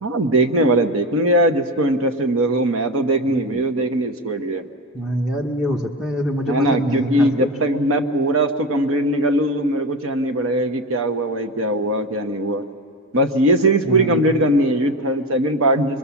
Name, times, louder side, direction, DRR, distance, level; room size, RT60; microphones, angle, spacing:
voice 1, 0.0-4.7 6.5-12.6 13.1-16.0, right 1 dB, 85° right, 7 dB, 1.0 m, -20 dB
voice 2, 3.3-3.6 4.9-7.5 13.8-14.3, equal, 5° right, 0 dB, 1.0 m, -25 dB
26.0 x 22.0 x 7.1 m, 2.3 s
head